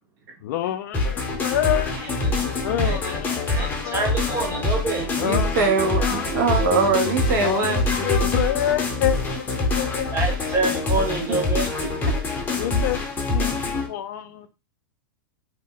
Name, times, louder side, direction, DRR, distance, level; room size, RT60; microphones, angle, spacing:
voice 1, 0.4-2.3 2.6-4.2 5.2-5.6 6.0-6.8 7.4-10.1 12.6-13.0 13.3-14.5, left 12 dB, 55° left, 0.4 m, -28 dB
sound 1, 0.9-13.9, left 2 dB, 15° left, 0.6 m, -25 dB
voice 2, 2.0-2.4 2.8-3.2 3.5-5.0 10.1-11.7, right 3 dB, 25° right, 0.9 m, -27 dB
voice 3, 5.2-7.8 11.3-11.4, right 4 dB, 65° right, 0.9 m, -22 dB
2.7 x 2.1 x 3.6 m
supercardioid pair, 145°, 11 cm